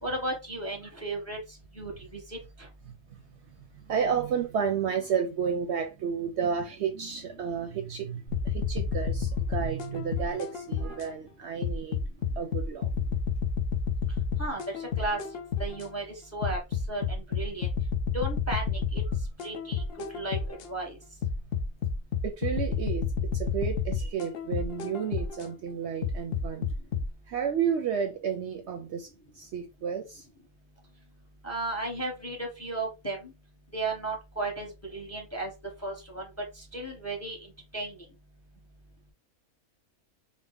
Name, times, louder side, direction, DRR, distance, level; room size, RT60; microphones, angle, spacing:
voice 1, 0.0-1.4 1.8-2.4 14.4-15.2 15.6-16.0 16.3-16.6 16.9-17.7 18.1-19.0 19.4-19.8 20.1-21.0 31.4-33.3 33.7-35.5 35.8-36.3 36.5-37.4 37.7-38.0, right 2 dB, 15° left, 0.7 m, -34 dB
voice 2, 3.6-12.0 12.4-12.9 22.2-26.7 27.3-29.1 29.3-30.2, right 7 dB, 65° right, 0.8 m, -31 dB
sound 1, 8.3-11.1 11.6-15.9 16.4-20.7 21.2-25.5 26.0-27.1, left 5 dB, 60° left, 0.7 m, -30 dB
4.0 x 2.1 x 3.5 m
omnidirectional pair, 1.4 m